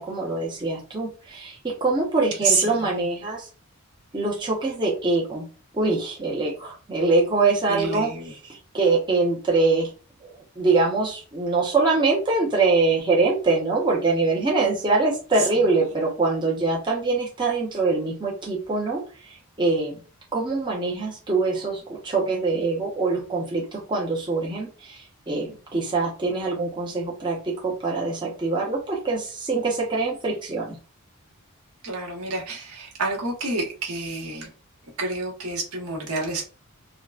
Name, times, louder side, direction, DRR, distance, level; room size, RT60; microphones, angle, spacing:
voice 1, 0.0-3.5 4.1-5.5 5.7-8.1 8.4-9.9 10.2-20.0 20.3-30.8, right 3 dB, 20° right, -3 dB, 0.6 m, -24 dB
voice 2, 2.4-3.0 7.7-8.3 15.4-15.5 15.9-16.0 31.8-34.5 35.0-36.4, right 3 dB, 80° right, -1 dB, 1.1 m, -28 dB
3.6 x 2.1 x 2.3 m, 0.36 s
head